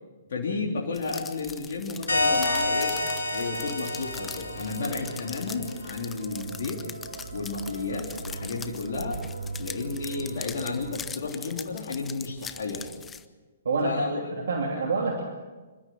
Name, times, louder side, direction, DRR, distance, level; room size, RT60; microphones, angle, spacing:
voice 1, 0.3-3.0 3.3-6.8 7.3-9.2 9.6-12.9 13.8-14.8, left 3 dB, 65° left, -2 dB, 3.4 m, -32 dB
sound 1, 0.9-13.2, left 6 dB, 15° left, 0.9 m, -42 dB
sound 2, 2.1-5.5, left 2 dB, 85° left, 3.7 m, -28 dB
sound 3, 2.1-11.0, right 2 dB, 90° right, 2.0 m, -40 dB
voice 2, 13.6-14.0 14.3-15.2, right 4 dB, 70° right, 1 dB, 2.9 m, -27 dB
26.5 x 13.0 x 7.6 m, 1.3 s
hypercardioid pair, 130°, 0 cm